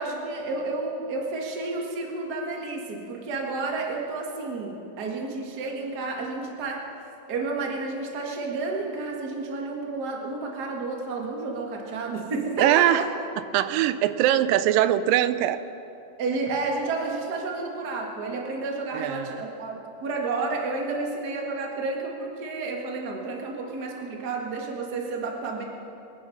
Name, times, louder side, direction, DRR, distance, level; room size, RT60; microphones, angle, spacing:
voice 1, 0.0-6.9 7.3-13.1 16.2-25.6, right 3 dB, 40° right, 1 dB, 1.7 m, -31 dB
voice 2, 12.6-13.1 13.5-15.6 18.9-19.4, right 12 dB, 90° right, 13 dB, 2.3 m, -22 dB
22.5 x 10.0 x 5.7 m, 2.8 s
omnidirectional pair, 3.9 m